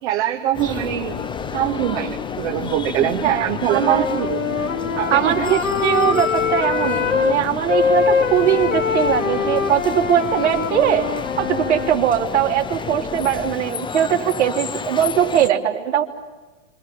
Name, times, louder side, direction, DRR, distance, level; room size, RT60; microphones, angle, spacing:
voice 1, 0.0-1.3 1.5-4.4 4.9-5.5, right 11 dB, 45° right, 1 dB, 2.0 m, -23 dB
sound 1, 0.5-15.5, left 5 dB, 10° left, 1.2 m, -32 dB
sound 2, 0.7-13.6, left 10 dB, 30° left, 1.4 m, -34 dB
voice 2, 3.2-4.1 5.1-11.1 11.4-16.0, right 10 dB, 60° right, 2 dB, 3.6 m, -20 dB
Wind instrument woodwind instrument, 3.7-7.4 7.7-12.0, left 5 dB, 90° left, 1.6 m, -23 dB
28.0 x 27.0 x 7.5 m, 1.2 s
figure-of-eight pair, 100°, 38 cm